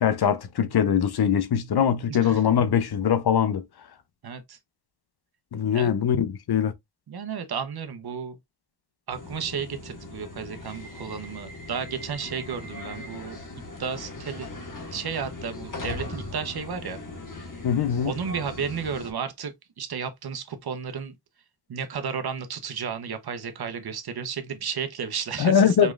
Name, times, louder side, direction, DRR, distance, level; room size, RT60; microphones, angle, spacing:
voice 1, 0.0-3.6 5.5-6.7 17.6-18.1 25.4-25.9, left 8 dB, 70° left, 0.7 m, -22 dB
voice 2, 2.1-2.4 4.2-4.6 5.7-5.9 7.1-8.4 9.1-13.4 13.8-14.5 14.9-17.0 17.4-17.5 18.0-21.1 21.7-25.9, right 6 dB, 70° right, 0.9 m, -33 dB
sound 1, 9.1-19.1, left 2 dB, 50° left, 1.7 m, -39 dB
5.3 x 3.0 x 2.4 m
cardioid pair, 45°, 40 cm